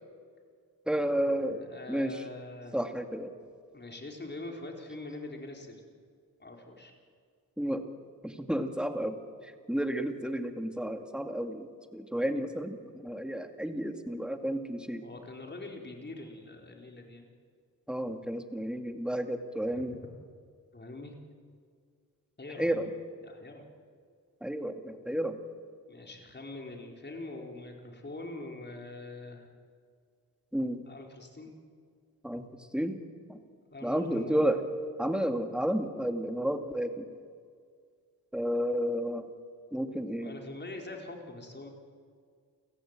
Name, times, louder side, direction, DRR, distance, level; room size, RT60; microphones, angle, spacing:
voice 1, 0.9-1.6 1.9-2.1 2.7-3.3 7.6-7.8 8.2-9.2 9.7-15.0 17.9-20.0 22.6-22.9 24.4-25.4 30.5-30.8 32.2-32.5 32.7-33.0 33.3-33.4 33.8-34.6 35.0-37.0 38.3-39.3 39.7-40.3, equal, ahead, 6 dB, 2.2 m, -31 dB
voice 2, 1.4-2.8 3.7-5.9 6.4-6.9 15.0-17.3 19.7-19.8 20.7-21.2 22.4-22.8 23.2-23.6 25.9-29.5 30.8-31.6 33.7-34.6 40.2-41.7, left 2 dB, 30° left, 2 dB, 4.6 m, -43 dB
29.0 x 15.0 x 9.1 m, 2.1 s
cardioid pair, 75°, 37 cm